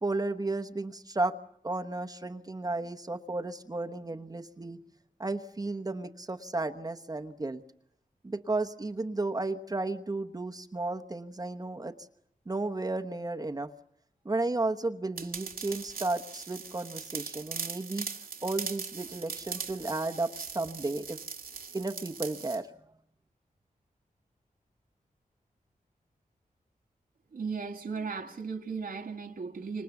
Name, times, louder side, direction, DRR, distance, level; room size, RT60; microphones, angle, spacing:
voice 1, 0.0-1.3 1.6-4.8 5.2-7.6 8.2-11.9 12.5-13.7 14.2-18.1 18.4-21.2 21.7-22.7, right 2 dB, 25° right, 1.0 m, -33 dB
sound 1, 15.2-22.6, right 5 dB, 90° right, 1.9 m, -40 dB
voice 2, 27.3-29.8, right 5 dB, 70° right, 1.4 m, -36 dB
30.0 x 26.5 x 7.1 m
wide cardioid pair, 130°, 15 cm